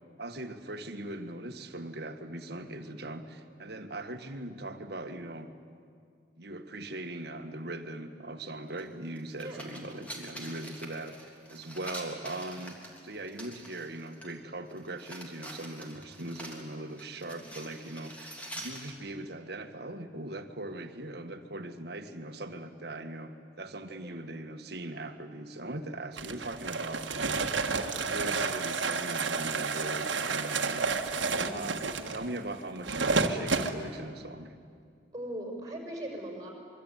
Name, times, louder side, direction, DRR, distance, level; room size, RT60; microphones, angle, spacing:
voice 1, 0.2-5.5 6.4-27.4 28.1-30.9 31.5-34.6, right 1 dB, 55° right, 7 dB, 1.7 m, -40 dB
sound 1, 8.8-8.9 9.2-14.3 14.7-18.9, right 1 dB, 5° left, 3.3 m, -45 dB
sound 2, 26.2-33.7, right 4 dB, 75° right, 1.6 m, -30 dB
voice 2, 31.3-31.6 35.1-36.5, right 1 dB, 20° right, 1 dB, 6.0 m, -40 dB
25.0 x 23.5 x 9.4 m, 2.2 s
head